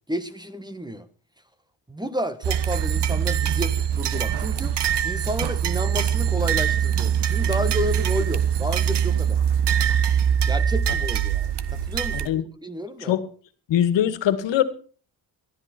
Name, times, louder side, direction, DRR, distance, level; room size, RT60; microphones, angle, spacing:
voice 1, 0.1-1.1 1.9-4.8 5.0-9.4 10.5-12.3 12.6-13.2, equal, 10° right, 1.4 m, -31 dB
sound 1, 2.4-12.3, right 8 dB, 70° right, 1.3 m, -23 dB
voice 2, 13.7-14.6, left 10 dB, 85° left, 1.9 m, -21 dB
19.0 x 13.5 x 4.4 m
cardioid pair, 90°, 43 cm